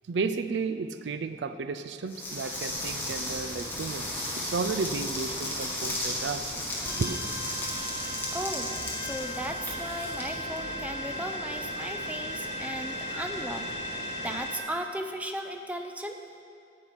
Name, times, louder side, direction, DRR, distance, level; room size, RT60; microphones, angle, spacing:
voice 1, 0.1-4.1 4.4-6.5 6.8-7.2, right 4 dB, 80° right, 11 dB, 0.4 m, -33 dB
sound 1, 2.1-11.1, left 1 dB, 10° left, 1.5 m, -35 dB
sound 2, 2.7-14.4, right 1 dB, 55° right, 1.6 m, -44 dB
sound 3, 6.8-14.6, left 1 dB, 80° left, 0.9 m, -37 dB
voice 2, 8.3-8.7 9.0-16.2, right 1 dB, 10° right, 5 dB, 0.5 m, -36 dB
11.0 x 4.7 x 8.1 m, 2.4 s
head